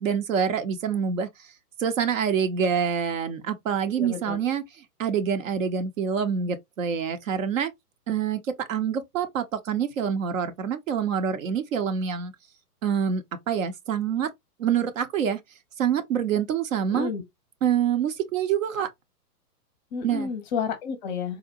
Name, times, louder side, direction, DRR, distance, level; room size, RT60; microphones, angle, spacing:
voice 1, 0.0-1.3 1.8-4.6 5.0-7.7 8.1-8.4 8.7-12.3 12.8-14.3 14.6-15.4 15.8-17.1 17.6-18.9 20.0-20.3, right 7 dB, 55° right, 0.7 m, -26 dB
voice 2, 4.0-4.4 16.9-17.2 19.9-21.4, left 6 dB, 30° left, 0.6 m, -31 dB
3.8 x 2.1 x 2.5 m
figure-of-eight pair, 120°, 47 cm